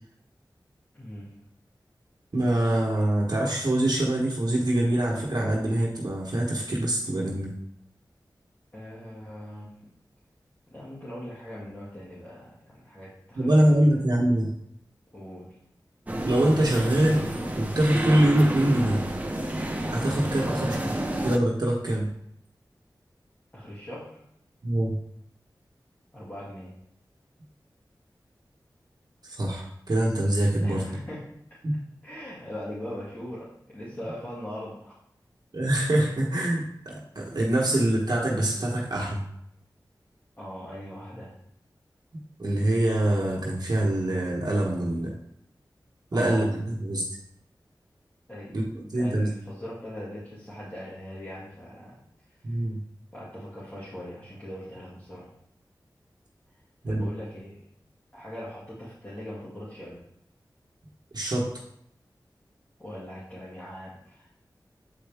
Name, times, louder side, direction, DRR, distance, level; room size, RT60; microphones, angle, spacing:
voice 1, 0.9-1.5 8.7-9.7 10.7-14.0 15.1-15.7 20.4-20.8 23.5-24.2 26.1-26.8 30.6-31.6 32.0-35.0 40.4-41.4 46.1-46.5 48.3-48.7 48.9-52.6 53.1-55.3 56.9-57.7 58.1-60.1 62.8-64.3, equal, 25° left, -9 dB, 2.2 m, -41 dB
voice 2, 2.3-7.5 13.4-14.5 16.2-17.3 17.5-19.1 19.8-20.9 21.2-22.1 24.6-25.0 29.2-30.8 31.6-31.7 35.5-39.2 42.4-45.2 46.1-47.1 48.5-48.6 48.9-49.3 52.4-52.8 56.8-57.1 61.1-61.6, right 1 dB, 60° right, -3 dB, 1.2 m, -24 dB
sound 1, 16.1-21.4, right 1 dB, 20° right, 0.8 m, -30 dB
7.6 x 4.5 x 3.5 m, 0.73 s
wide cardioid pair, 60°, 8 cm